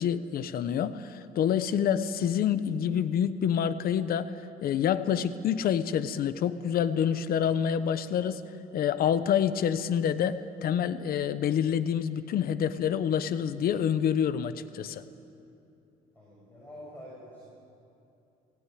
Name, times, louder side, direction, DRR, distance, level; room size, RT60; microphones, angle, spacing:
voice 1, 0.0-4.3 4.6-8.4 8.7-15.0, left 8 dB, 60° left, 13 dB, 1.0 m, -27 dB
voice 2, 16.1-17.5, equal, 10° left, -6 dB, 7.3 m, -47 dB
19.5 x 18.0 x 9.4 m, 2.8 s
cardioid pair, 110°, 17 cm